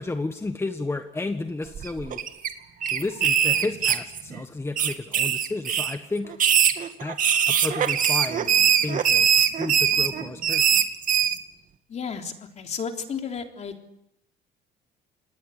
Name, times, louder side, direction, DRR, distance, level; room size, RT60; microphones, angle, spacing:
voice 1, 0.0-2.2 2.9-6.3 7.0-8.5 8.8-10.6, left 3 dB, 15° left, 7 dB, 1.6 m, -32 dB
sound 1, 1.7-2.5 2.8-4.4 4.8-6.0 6.3-11.4, right 8 dB, 50° right, 2.4 m, -21 dB
voice 2, 11.9-13.7, left 6 dB, 40° left, 4 dB, 3.6 m, -33 dB
28.0 x 19.5 x 8.3 m, 0.83 s
cardioid pair, 110°, 17 cm